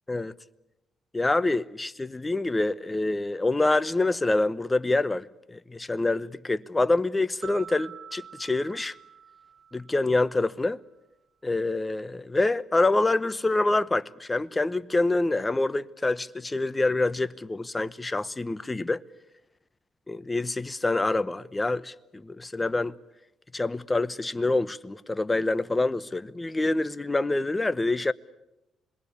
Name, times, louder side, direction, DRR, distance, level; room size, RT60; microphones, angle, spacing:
voice 1, 1.1-8.9 9.7-10.8 11.4-19.0 20.1-23.0 23.5-28.1, left 2 dB, 20° left, 0.9 m, -26 dB
sound 1, 7.4-10.5, right 7 dB, 60° right, 8.0 m, -46 dB
27.0 x 22.0 x 8.4 m
cardioid pair, 90°, 0 cm